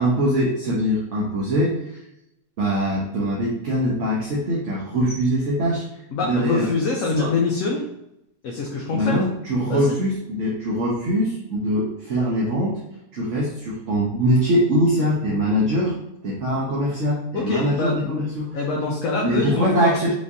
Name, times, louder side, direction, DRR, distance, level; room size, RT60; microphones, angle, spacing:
voice 1, 0.0-2.0 2.6-5.8 6.2-6.7 7.1-7.3 8.9-12.8 13.1-15.9 16.2-18.6 19.2-20.1, equal, 55° right, -4 dB, 1.2 m, -22 dB
voice 2, 6.1-7.9 8.4-9.2 9.7-10.0 17.3-18.2 18.5-20.1, left 4 dB, 65° left, -2 dB, 1.0 m, -25 dB
5.1 x 3.2 x 2.7 m, 0.84 s
omnidirectional pair, 1.6 m